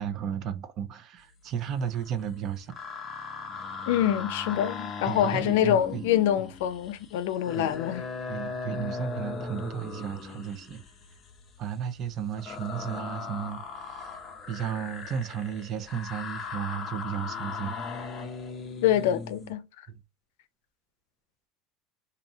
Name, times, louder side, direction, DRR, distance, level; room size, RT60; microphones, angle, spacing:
voice 1, 0.0-2.8 5.1-6.0 6.4-6.5 7.6-7.7 8.3-10.8 11.6-14.2 14.5-17.8 19.9-20.0, right 8 dB, 30° right, 0.4 m, -34 dB
sound 1, 1.7-2.3 2.5-19.5, left 4 dB, 20° left, 0.5 m, -38 dB
voice 2, 3.9-8.0 18.8-19.6, left 11 dB, 80° left, 0.5 m, -25 dB
4.2 x 2.6 x 2.7 m
cardioid pair, 180°, 0 cm